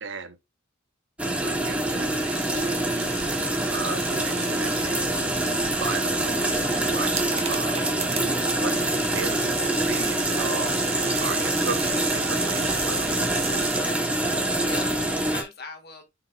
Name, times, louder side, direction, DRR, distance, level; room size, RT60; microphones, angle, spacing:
voice 1, 0.0-0.4 1.4-5.0 5.8-7.8 8.2-8.9 9.1-13.1, right 4 dB, 60° right, 1.0 m, -36 dB
sound 1, 1.2-15.4, right 1 dB, 5° right, 1.2 m, -25 dB
sound 2, 1.8-13.8, right 6 dB, 30° right, 1.1 m, -36 dB
voice 2, 11.1-11.7 13.8-16.0, left 4 dB, 50° left, 2.0 m, -41 dB
9.6 x 5.0 x 2.5 m
head